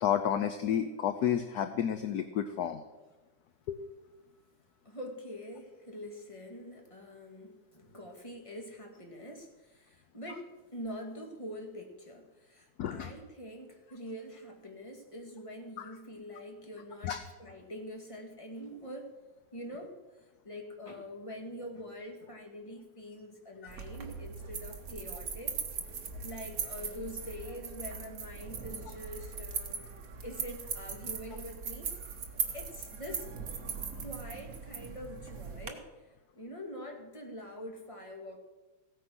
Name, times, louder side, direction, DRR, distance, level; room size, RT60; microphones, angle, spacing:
voice 1, 0.0-2.8 3.7-3.8 12.8-13.1 15.8-15.9 17.0-17.2, left 9 dB, 65° left, 10 dB, 1.0 m, -31 dB
voice 2, 4.8-19.1 19.5-29.9 30.2-32.0 32.5-33.3 33.9-38.4, equal, 15° left, 2 dB, 1.9 m, -45 dB
sound 1, 23.7-35.7, right 6 dB, 50° right, 1.6 m, -40 dB
16.0 x 9.2 x 6.1 m, 1.2 s
omnidirectional pair, 2.1 m